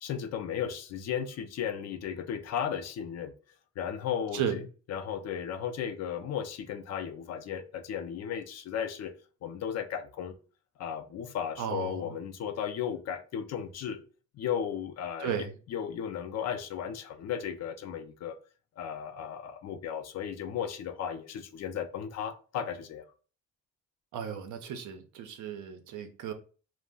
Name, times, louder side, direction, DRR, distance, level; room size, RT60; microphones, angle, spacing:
voice 1, 0.0-3.3 3.8-4.6 4.9-9.1 9.4-10.3 10.8-14.0 14.3-18.4 18.8-23.1, left 8 dB, 60° left, 0.5 m, -35 dB
voice 2, 11.6-12.2 15.2-15.5 24.1-26.3, right 8 dB, 80° right, 0.6 m, -34 dB
2.2 x 2.1 x 3.6 m
cardioid pair, 90°, 30 cm